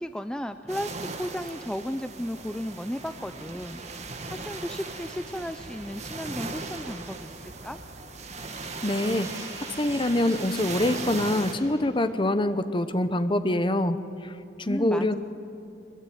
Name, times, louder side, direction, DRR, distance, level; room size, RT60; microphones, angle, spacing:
voice 1, 0.0-7.8 14.7-15.2, equal, 5° left, 9 dB, 0.5 m, -34 dB
sound 1, 0.7-11.5, right 3 dB, 40° right, 1.9 m, -38 dB
sound 2, 3.4-8.5, right 1 dB, 65° right, 5.8 m, -52 dB
sound 3, 8.6-12.2, right 2 dB, 20° right, 3.4 m, -46 dB
voice 2, 8.8-9.3 9.8-14.0 14.2-14.3 14.6-15.2, left 1 dB, 25° left, 11 dB, 0.9 m, -25 dB
22.5 x 22.5 x 9.3 m, 2.6 s
head